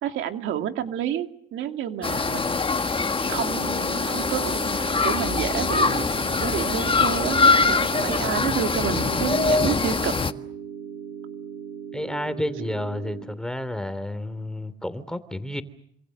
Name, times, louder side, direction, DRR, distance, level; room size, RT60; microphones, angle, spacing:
voice 1, 0.0-2.9 3.3-4.6 5.0-10.1, right 10 dB, 85° right, 6 dB, 2.6 m, -30 dB
sound 1, 2.0-10.3, left 4 dB, 25° left, 1.6 m, -23 dB
sound 2, 3.2-13.2, right 7 dB, 55° right, 6.1 m, -38 dB
voice 2, 11.9-15.6, left 1 dB, 5° left, 13 dB, 3.1 m, -31 dB
27.5 x 26.5 x 6.6 m, 0.71 s
cardioid pair, 90°, 20 cm